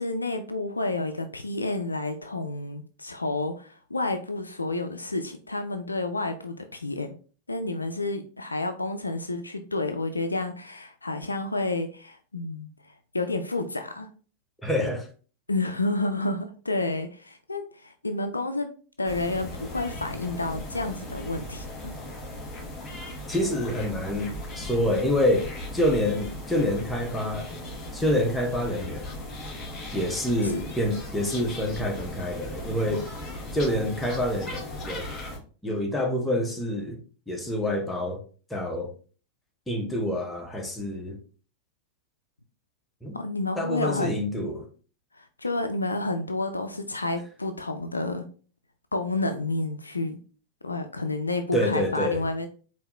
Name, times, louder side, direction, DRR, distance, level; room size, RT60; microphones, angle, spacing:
voice 1, 0.0-7.1 7.5-14.1 15.5-18.7 19.0-21.9 30.4-30.6 43.1-44.1 45.1-48.2 48.9-50.2 50.6-52.5, left 2 dB, 80° left, 0.4 m, -30 dB
voice 2, 14.6-15.1 23.3-27.5 27.9-29.1 29.9-33.1 33.5-35.1 35.6-37.0 37.3-38.2 38.5-38.9 39.7-41.2 43.0-43.2 43.6-44.7 51.5-52.2, left 1 dB, 5° left, 0.9 m, -27 dB
sound 1, 19.0-35.4, left 1 dB, 25° left, 2.0 m, -38 dB
4.6 x 2.8 x 3.0 m
figure-of-eight pair, 90°, 0 cm